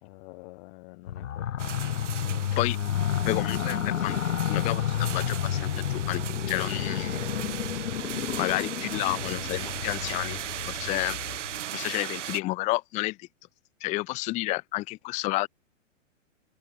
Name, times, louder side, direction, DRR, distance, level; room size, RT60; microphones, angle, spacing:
voice 1, 0.0-2.5, left 24 dB, 45° left, 2.3 m, -48 dB
sound 1, 1.1-11.6, left 10 dB, 80° left, 1.3 m, -30 dB
sound 2, 1.6-12.4, right 11 dB, 65° right, 2.9 m, -37 dB
voice 2, 3.3-4.2 4.5-7.2 8.4-10.4 10.7-11.2 11.7-13.3 13.8-15.5, left 20 dB, 20° left, 0.6 m, -30 dB
hypercardioid pair, 130°, 38 cm